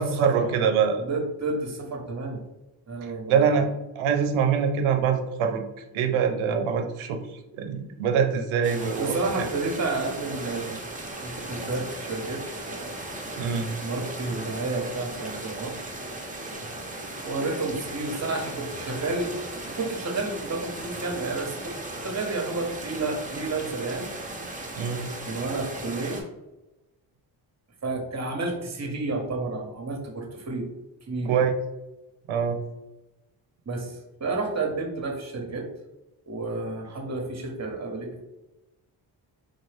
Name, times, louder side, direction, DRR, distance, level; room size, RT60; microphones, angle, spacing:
voice 1, 0.0-1.0 3.0-3.7 3.9-5.6 5.9-9.5 13.4-13.7 24.8-25.1 31.3-31.5 32.3-32.6, right 6 dB, 85° right, 6 dB, 0.6 m, -24 dB
voice 2, 1.0-2.4 2.9-3.5 9.0-10.9 11.2-13.0 13.8-15.7 17.2-21.7 22.0-24.1 25.3-26.2 27.8-30.7 31.1-31.4 33.7-35.7 36.3-38.2, right 3 dB, 35° right, 2 dB, 1.1 m, -31 dB
sound 1, 8.6-26.2, right 2 dB, 15° right, 1.0 m, -37 dB
3.9 x 2.6 x 3.3 m, 1.0 s
cardioid pair, 60°, 47 cm